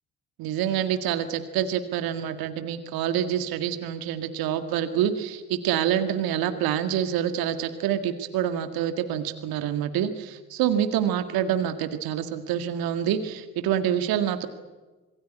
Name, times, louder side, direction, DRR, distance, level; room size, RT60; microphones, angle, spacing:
voice 1, 0.4-14.5, right 10 dB, 65° right, 9 dB, 1.9 m, -26 dB
27.0 x 19.5 x 9.9 m, 1.2 s
figure-of-eight pair, 45°, 39 cm